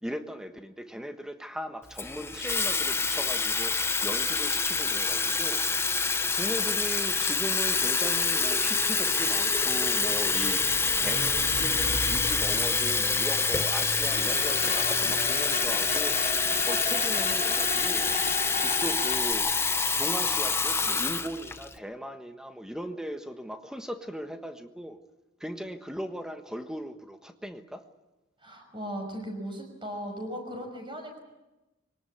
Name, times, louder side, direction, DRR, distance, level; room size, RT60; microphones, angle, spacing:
voice 1, 0.0-5.6 6.3-10.7 11.0-16.2 16.6-18.1 18.6-19.5 20.0-25.0 25.4-27.8, equal, 5° right, 7 dB, 1.3 m, -38 dB
Water tap faucet / Fill (with liquid), 2.0-21.7, left 4 dB, 10° left, 0.7 m, -26 dB
Truck, 7.3-21.5, left 1 dB, 85° left, 2.5 m, -42 dB
sound 1, 14.0-19.3, left 6 dB, 50° left, 2.8 m, -36 dB
voice 2, 28.4-31.2, equal, 25° right, 4 dB, 5.7 m, -37 dB
23.0 x 18.5 x 8.6 m, 1.0 s
head